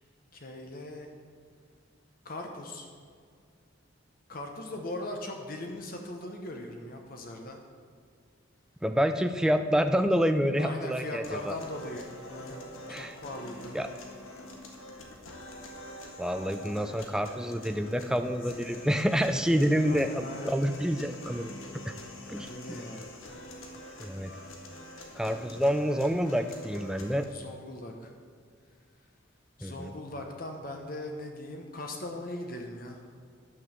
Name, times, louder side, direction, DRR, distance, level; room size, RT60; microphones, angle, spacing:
voice 1, 0.3-1.1 2.2-2.9 4.3-7.6 10.6-13.7 19.8-20.6 22.4-23.1 27.3-28.1 29.6-33.0, left 1 dB, 45° left, 3 dB, 1.0 m, -40 dB
voice 2, 8.8-11.6 12.9-13.1 13.7-13.9 16.2-21.5 21.8-21.9 22.3-22.8 24.0-24.3 25.2-27.3 29.6-29.9, equal, 5° right, 8 dB, 0.4 m, -28 dB
sound 1, 11.2-27.2, left 1 dB, 85° left, 1.6 m, -45 dB
11.0 x 6.2 x 7.3 m, 2.2 s
head